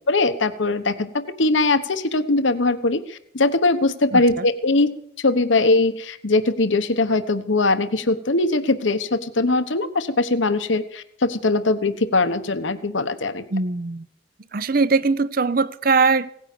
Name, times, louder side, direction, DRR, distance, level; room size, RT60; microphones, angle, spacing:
voice 1, 0.1-13.4, left 2 dB, 80° left, 1.1 m, -21 dB
voice 2, 4.1-4.5 13.5-14.1 14.5-16.3, right 4 dB, 50° right, 0.6 m, -21 dB
17.5 x 9.8 x 6.7 m
head